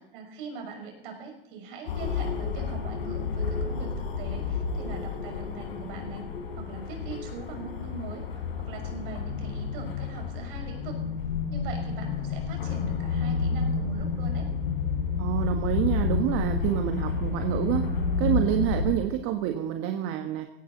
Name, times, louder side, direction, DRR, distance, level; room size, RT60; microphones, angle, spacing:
voice 1, 0.1-6.2 6.5-11.0 11.5-14.5, right 4 dB, 65° right, 3 dB, 6.0 m, -42 dB
sound 1, 1.9-19.0, left 5 dB, 75° left, 3.6 m, -30 dB
voice 2, 15.2-17.8 18.2-20.5, right 11 dB, 50° right, 5 dB, 1.5 m, -27 dB
17.0 x 16.0 x 4.0 m, 0.90 s
hypercardioid pair, 100°, 29 cm